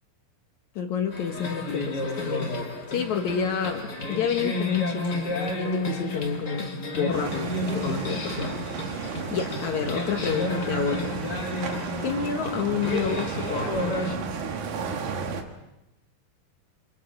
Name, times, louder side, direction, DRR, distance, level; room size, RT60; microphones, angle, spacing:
voice 1, 0.7-2.5 2.9-11.1 12.0-13.8, left 7 dB, 85° left, 4 dB, 1.6 m, -29 dB
sound 1, 1.1-14.1, left 1 dB, 60° left, 1.0 m, -31 dB
sound 2, 7.1-15.4, right 5 dB, 55° right, 2.4 m, -33 dB
29.0 x 27.5 x 3.9 m, 0.93 s
omnidirectional pair, 5.2 m